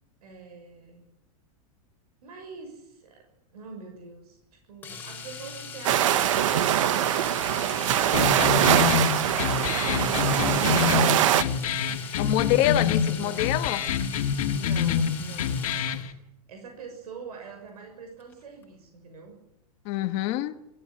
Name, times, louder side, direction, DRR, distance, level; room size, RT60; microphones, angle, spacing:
voice 1, 0.2-1.1 2.2-3.2 3.5-4.4 4.7-9.8 10.5-12.4 13.1-13.4 14.5-15.6 16.1-19.3, right 4 dB, 90° right, 6.7 m, -45 dB
Domestic sounds home sounds, 4.8-16.1 18.2-18.3 18.6-18.7, left 5 dB, 10° left, 5.0 m, -40 dB
sound 1, 5.8-11.4, right 11 dB, 55° right, 1.2 m, -23 dB
sound 2, 8.1-16.1, left 7 dB, 65° left, 2.2 m, -27 dB
voice 2, 12.2-13.8 19.8-20.6, left 13 dB, 30° left, 1.5 m, -25 dB
24.5 x 16.0 x 9.0 m
supercardioid pair, 175°, 19 cm